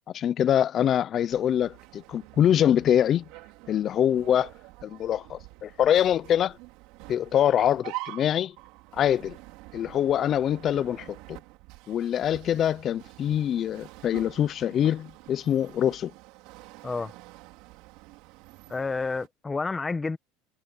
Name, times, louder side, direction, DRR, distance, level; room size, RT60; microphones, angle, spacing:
voice 1, 0.1-3.2 3.7-4.5 4.8-6.6 7.1-8.5 8.9-9.4 9.7-11.4 11.9-16.1, left 10 dB, 30° left, 0.5 m, -24 dB
sound 1, 1.3-19.3, right 22 dB, 60° right, 5.2 m, -46 dB
voice 2, 16.8-17.1 18.7-20.2, left 4 dB, 10° left, 1.0 m, -30 dB
cardioid pair, 155°, 0 cm